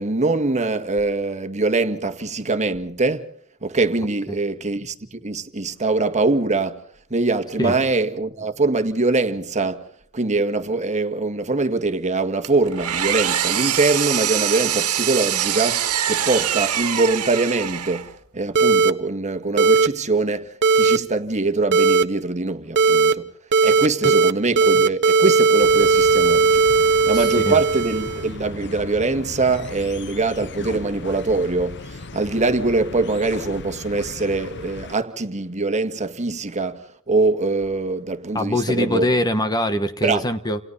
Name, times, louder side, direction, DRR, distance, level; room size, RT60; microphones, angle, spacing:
voice 1, 0.0-3.3 3.6-6.8 7.1-9.9 10.1-23.3 23.6-26.6 27.1-39.1 40.0-40.3, right 3 dB, 30° right, 1.8 m, -23 dB
Engine, 12.4-18.2, right 10 dB, 80° right, 2.1 m, -24 dB
sound 1, 18.6-18.9 19.6-19.9 20.6-21.0 21.7-22.0 22.8-23.1 23.5-24.3 24.6-28.3, right 4 dB, 55° right, 1.2 m, -17 dB
sound 2, 25.6-35.0, left 3 dB, 55° left, 1.0 m, -37 dB
voice 2, 27.1-27.6 38.3-40.6, left 1 dB, 20° left, 1.3 m, -23 dB
30.0 x 28.5 x 4.2 m
head